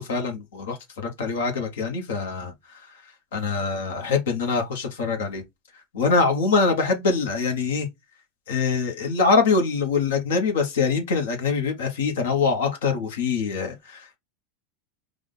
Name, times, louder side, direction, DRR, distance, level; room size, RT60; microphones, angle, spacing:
voice 1, 0.0-5.4 5.7-7.9 8.5-14.2, left 4 dB, 75° left, 1.4 m, -24 dB
4.9 x 2.6 x 4.0 m
hypercardioid pair, 95°, 0 cm